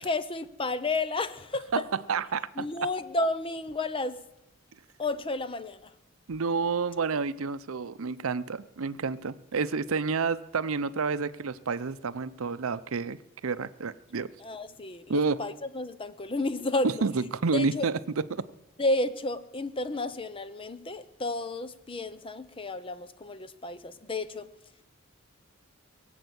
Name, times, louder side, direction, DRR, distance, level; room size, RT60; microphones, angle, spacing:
voice 1, 0.0-1.7 2.6-4.2 5.0-5.9 14.4-17.1 17.5-17.9 18.8-24.5, left 2 dB, 25° left, 13 dB, 0.7 m, -32 dB
voice 2, 1.7-2.7 6.3-13.2 13.4-14.3 15.1-15.4 17.0-18.4, right 4 dB, 70° right, 15 dB, 0.6 m, -29 dB
22.0 x 8.0 x 8.1 m, 0.88 s
head